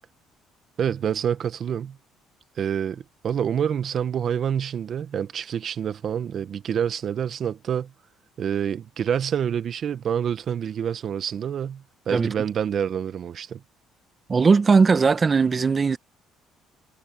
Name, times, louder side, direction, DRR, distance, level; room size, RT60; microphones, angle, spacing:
voice 1, 0.8-2.0 2.6-7.9 8.4-13.6, right 8 dB, 50° right, 1.2 m, -27 dB
voice 2, 14.3-16.0, right 4 dB, 30° right, 1.7 m, -18 dB
cardioid pair, 100°, 0 cm